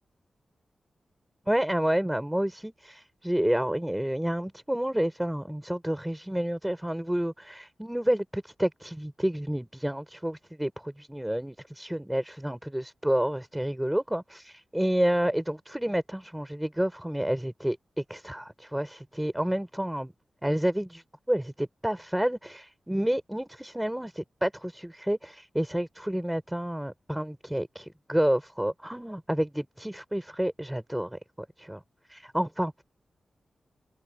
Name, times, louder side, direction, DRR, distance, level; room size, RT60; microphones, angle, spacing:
voice 1, 1.5-20.1 20.4-31.2 31.6-31.8 32.1-32.8, right 1 dB, 5° right, 5.0 m, -29 dB
open air
wide cardioid pair, 135°, 0 cm